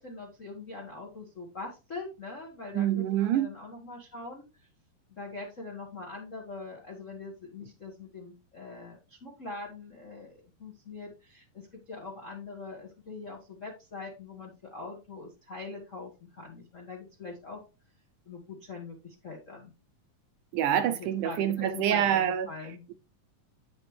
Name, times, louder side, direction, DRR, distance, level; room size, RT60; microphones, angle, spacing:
voice 1, 0.0-4.7 5.1-17.6 18.2-19.7 20.8-22.8, left 3 dB, 55° left, 0.8 m, -43 dB
voice 2, 2.7-3.5 20.5-22.5, right 10 dB, 75° right, 2.0 m, -26 dB
9.0 x 5.2 x 3.1 m
omnidirectional pair, 3.9 m